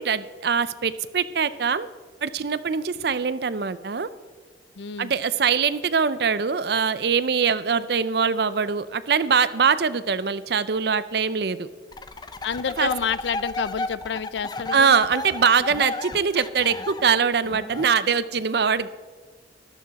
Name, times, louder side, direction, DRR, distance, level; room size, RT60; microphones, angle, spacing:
voice 1, 0.0-1.9 2.2-4.1 5.0-11.7 12.8-12.9 14.7-18.9, right 6 dB, 60° right, 15 dB, 0.5 m, -23 dB
voice 2, 4.8-5.1 12.4-14.9, left 6 dB, 75° left, 17 dB, 0.5 m, -28 dB
sound 1, 11.9-17.9, left 2 dB, 20° left, 0.5 m, -33 dB
13.5 x 12.0 x 4.1 m, 1.5 s
head